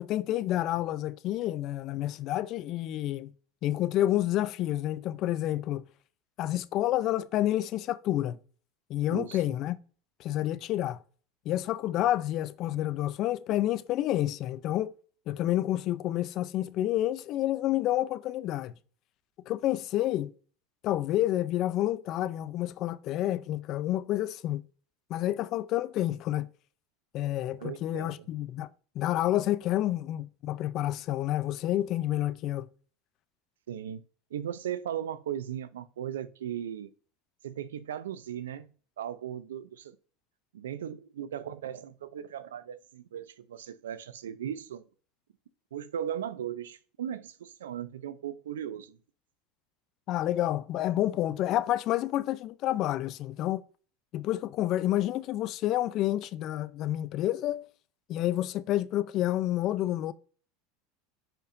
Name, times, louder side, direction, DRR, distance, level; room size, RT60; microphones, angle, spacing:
voice 1, 0.0-3.3 3.6-5.9 6.4-8.4 8.9-9.8 10.2-11.0 11.5-14.9 15.3-18.7 19.5-20.3 20.8-24.6 25.1-26.5 27.1-28.7 29.0-32.7 50.1-53.6 54.1-57.6 58.1-60.1, left 13 dB, 50° left, 0.5 m, -29 dB
voice 2, 9.1-9.5 27.6-28.3 33.7-34.0 34.3-36.9 37.4-38.7 39.0-40.0 40.5-44.8 45.7-49.0, right 10 dB, 85° right, 0.5 m, -37 dB
9.8 x 4.5 x 2.6 m
hypercardioid pair, 95°, 0 cm